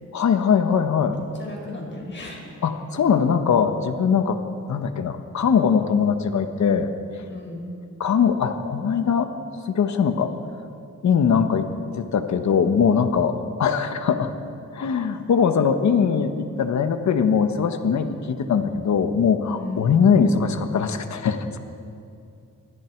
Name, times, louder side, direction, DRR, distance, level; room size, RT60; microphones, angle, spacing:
voice 1, 0.1-1.1 2.6-4.4 4.7-6.9 8.0-9.3 9.6-10.3 11.0-11.6 11.9-14.3 14.7-21.6, left 6 dB, 70° left, 7 dB, 1.4 m, -21 dB
voice 2, 1.4-2.4 7.3-7.7 11.3-11.4 19.6-20.0, left 2 dB, 40° left, 0 dB, 5.2 m, -35 dB
27.0 x 22.5 x 4.7 m, 2.5 s
wide cardioid pair, 155°, 30 cm